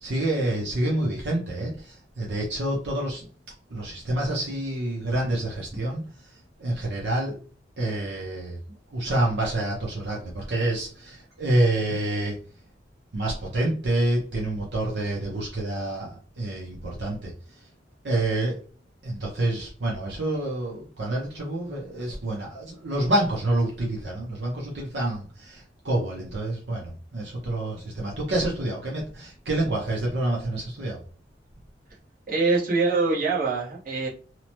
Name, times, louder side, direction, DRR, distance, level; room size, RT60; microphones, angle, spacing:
voice 1, 0.0-3.3 3.7-6.0 6.6-7.4 7.8-8.6 8.9-12.4 13.1-17.3 18.0-18.6 19.0-31.0, right 1 dB, 70° right, -3 dB, 0.6 m, -27 dB
voice 2, 32.3-34.1, right 3 dB, 50° right, -4 dB, 0.9 m, -24 dB
2.8 x 2.1 x 2.9 m, 0.40 s
head